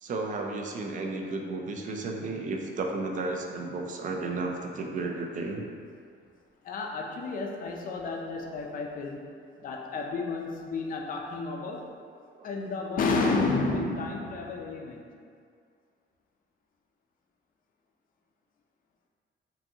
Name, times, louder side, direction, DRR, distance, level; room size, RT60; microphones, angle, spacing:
voice 1, 0.0-5.7 12.3-12.5, right 3 dB, 40° right, 2 dB, 0.4 m, -33 dB
voice 2, 6.6-9.2 9.6-11.8 12.4-15.1, left 3 dB, 45° left, 1 dB, 0.4 m, -31 dB
5.4 x 2.6 x 2.7 m, 2.2 s
cardioid pair, 180°, 21 cm